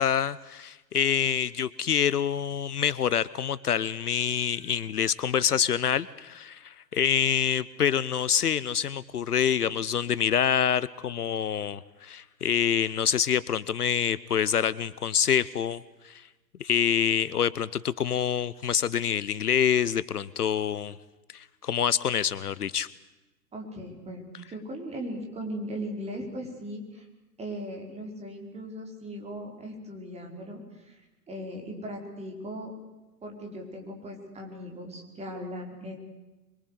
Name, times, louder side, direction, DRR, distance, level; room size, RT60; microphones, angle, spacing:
voice 1, 0.0-16.2 16.6-21.0 21.3-22.9, left 8 dB, 65° left, 19 dB, 0.9 m, -26 dB
voice 2, 23.5-27.1 27.4-32.7 33.2-36.0, equal, 10° right, 2 dB, 5.1 m, -38 dB
26.0 x 23.0 x 8.3 m, 1.1 s
figure-of-eight pair, 110°, 50 cm